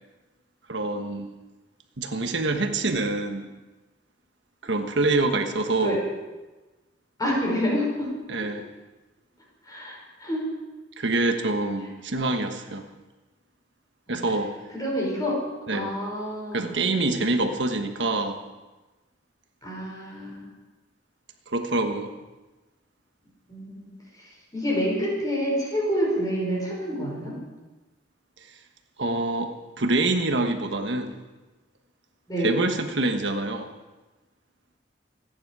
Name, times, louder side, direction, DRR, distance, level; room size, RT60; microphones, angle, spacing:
voice 1, 0.7-1.3 2.0-3.5 4.6-6.0 8.3-8.7 11.0-12.9 14.1-14.5 15.7-15.9 16.5-18.4 21.5-22.1 29.0-31.2 32.4-33.7, right 2 dB, 75° right, 5 dB, 1.4 m, -26 dB
voice 2, 7.2-8.1 9.7-10.4 14.1-14.2 14.7-15.4 15.7-17.2 19.6-20.5 23.5-23.9 24.2-27.4 32.3-32.7, equal, 20° left, -3 dB, 5.8 m, -28 dB
26.0 x 10.0 x 4.9 m, 1.2 s
head